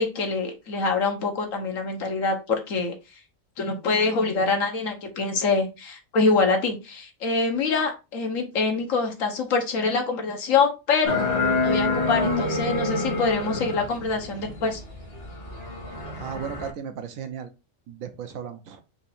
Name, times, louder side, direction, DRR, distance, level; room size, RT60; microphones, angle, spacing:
voice 1, 0.0-2.9 3.6-11.2 11.6-14.8, left 4 dB, 70° left, 3 dB, 1.4 m, -25 dB
sound 1, 11.0-16.7, left 3 dB, 45° left, 1.5 m, -27 dB
voice 2, 16.2-17.5 17.9-18.8, right 8 dB, 80° right, 7 dB, 1.1 m, -35 dB
4.4 x 2.6 x 4.1 m, 0.27 s
omnidirectional pair, 1.4 m